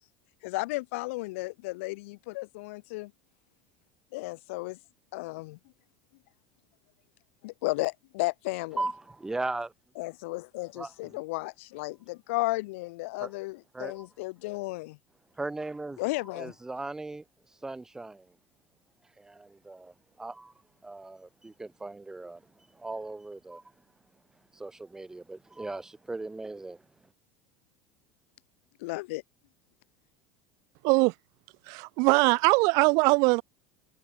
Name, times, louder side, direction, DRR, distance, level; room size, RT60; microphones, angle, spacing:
voice 1, 0.4-3.1 4.1-4.8 5.1-5.6 7.4-8.8 10.0-15.0 16.0-16.5 28.8-29.2, left 23 dB, 75° left, 3.0 m, -34 dB
voice 2, 8.8-9.7 10.8-11.2 13.2-13.3 13.7-14.1 15.4-16.0 16.3-17.2 17.6-18.3 19.2-20.5 20.8-23.6 24.5-26.8, right 2 dB, 10° right, 2.7 m, -38 dB
voice 3, 30.8-31.1 31.7-33.4, right 30 dB, 55° right, 1.8 m, -22 dB
cardioid pair, 155°, 7 cm